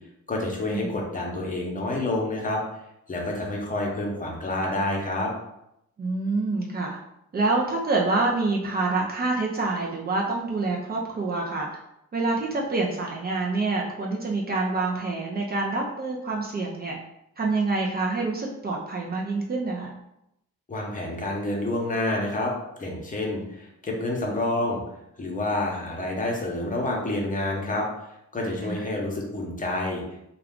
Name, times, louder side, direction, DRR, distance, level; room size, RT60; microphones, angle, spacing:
voice 1, 0.3-2.6 3.1-5.3 20.7-22.5 22.8-24.8 25.2-27.9 28.3-30.0, left 2 dB, 25° left, -1 dB, 0.8 m, -28 dB
voice 2, 6.0-7.0 7.3-11.7 12.1-17.0 17.4-19.9 28.6-28.8, right 3 dB, 30° right, -2 dB, 0.5 m, -26 dB
2.3 x 2.3 x 3.6 m, 0.82 s
cardioid pair, 90°, 30 cm